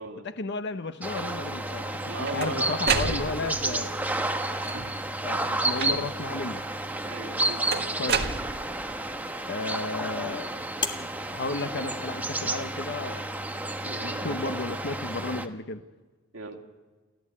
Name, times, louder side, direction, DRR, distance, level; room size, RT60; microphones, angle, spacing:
voice 1, 0.2-1.9 2.3-3.9 5.2-6.6 8.0-8.3 9.5-10.5 11.3-13.2 14.0-15.8, left 3 dB, 60° left, 9 dB, 0.9 m, -33 dB
sound 1, 1.0-15.5, right 2 dB, 10° right, 1.1 m, -31 dB
Door Open Close, 1.8-3.7 4.5-5.1 5.8-6.3 7.7-9.0, right 5 dB, 55° right, 1.6 m, -30 dB
voice 2, 2.0-4.0 7.0-8.1 13.9-14.5 16.3-16.6, right 3 dB, 85° right, 3 dB, 2.2 m, -38 dB
sound 2, 8.5-13.5, left 4 dB, 25° left, 1.7 m, -41 dB
29.5 x 13.5 x 8.6 m, 1.3 s
head